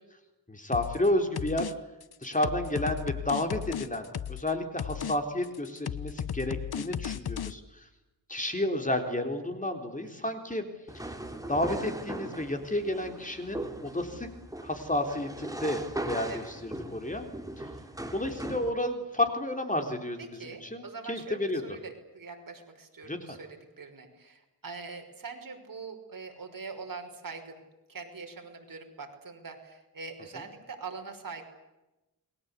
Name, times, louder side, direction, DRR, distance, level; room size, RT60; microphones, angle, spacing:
voice 1, 0.5-1.7 2.2-7.8 8.3-10.7 11.5-14.3 14.6-15.8 16.1-17.3 17.6-17.7 18.1-21.8 23.0-23.4 30.3-30.5, left 1 dB, 20° left, 5 dB, 3.8 m, -31 dB
sound 1, 0.7-1.1 1.4-1.7 2.0-4.5 4.8-5.2 5.4-7.5, left 8 dB, 75° left, 1.1 m, -35 dB
sound 2, 10.9-18.7, right 1 dB, 10° right, 3.3 m, -39 dB
voice 2, 20.2-27.6 27.9-31.4, right 4 dB, 60° right, 4 dB, 5.7 m, -43 dB
29.5 x 22.5 x 8.4 m, 0.99 s
wide cardioid pair, 120°, 37 cm